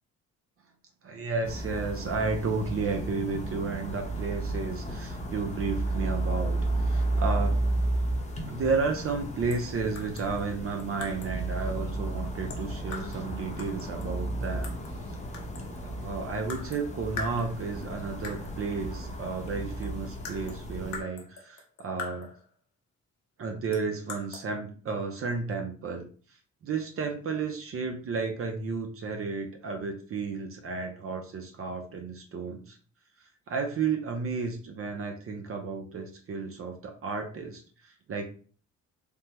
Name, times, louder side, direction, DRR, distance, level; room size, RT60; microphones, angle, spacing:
voice 1, 1.0-7.6 8.5-14.7 15.8-22.3 23.4-26.1 26.6-32.8 33.5-38.2, right 4 dB, 50° right, 4 dB, 0.6 m, -32 dB
sound 1, 1.4-21.0, right 2 dB, 25° left, 0.8 m, -33 dB
sound 2, 9.5-9.7 10.0-11.4 12.5-13.3 13.6-15.0 15.3-15.9 16.5-16.9 17.2-17.9 18.2-18.6 19.5-19.6 19.8-22.5 23.7-24.5, left 4 dB, 65° left, 0.9 m, -42 dB
3.4 x 2.1 x 2.9 m, 0.40 s
cardioid pair, 90°, 30 cm